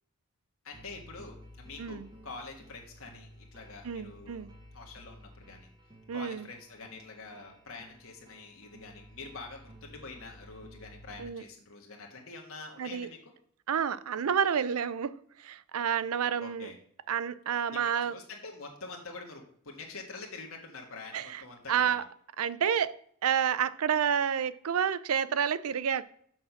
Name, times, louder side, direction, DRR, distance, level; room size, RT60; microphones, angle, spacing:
voice 1, 0.6-5.7 6.1-13.2 16.4-16.8 17.5-22.0, left 3 dB, 65° left, 1.4 m, -46 dB
sound 1, 0.7-11.2, equal, 20° right, 1.4 m, -54 dB
voice 2, 3.8-4.5 6.1-6.5 11.2-11.4 12.8-13.1 13.7-16.7 17.1-18.2 21.1-21.4 21.7-22.1 22.4-26.0, right 8 dB, 80° right, 0.5 m, -29 dB
6.4 x 6.1 x 5.9 m
head